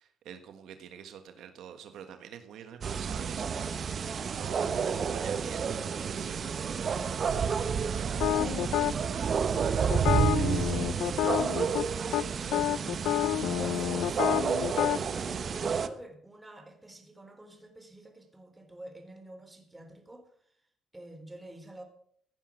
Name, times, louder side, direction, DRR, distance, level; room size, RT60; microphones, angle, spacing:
voice 1, 0.0-12.6, right 8 dB, 80° right, 8 dB, 1.5 m, -47 dB
sound 1, 2.8-15.9, right 6 dB, 50° right, 1.1 m, -30 dB
sound 2, 8.2-8.9 9.9-11.9 12.1-12.2 12.5-15.0, left 12 dB, 85° left, 0.6 m, -28 dB
voice 2, 12.1-12.7 13.4-14.5 14.8-20.6 20.9-21.8, right 1 dB, 15° right, 5 dB, 3.9 m, -48 dB
16.0 x 10.0 x 6.4 m, 0.63 s
cardioid pair, 90°, 0 cm